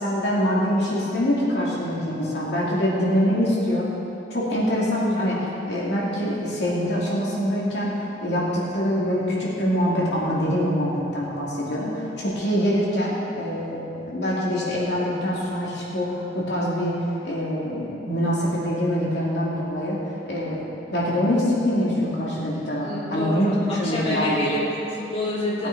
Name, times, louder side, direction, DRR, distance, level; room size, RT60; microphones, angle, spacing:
voice 1, 0.0-3.9 4.3-20.0 20.3-20.6 20.9-24.5 25.6-25.7, equal, 65° left, -6 dB, 2.8 m, -24 dB
voice 2, 22.8-25.7, left 1 dB, 35° left, -8 dB, 2.7 m, -28 dB
18.0 x 8.7 x 4.7 m, 2.9 s
head